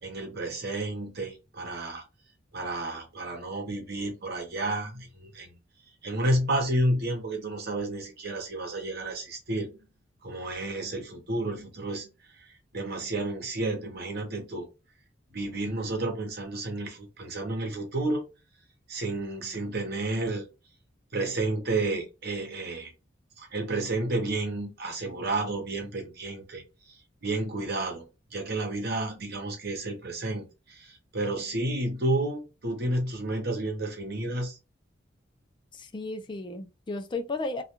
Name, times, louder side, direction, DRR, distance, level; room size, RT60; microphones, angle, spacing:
voice 1, 0.0-2.0 2.5-5.6 6.0-9.7 10.2-12.1 12.4-12.5 12.7-14.7 15.3-18.2 18.9-20.5 21.1-22.9 23.4-26.6 26.9-28.0 28.3-34.6, right 2 dB, 55° right, 0.9 m, -31 dB
voice 2, 35.7-37.6, left 3 dB, 25° left, 0.4 m, -34 dB
2.4 x 2.3 x 2.9 m
head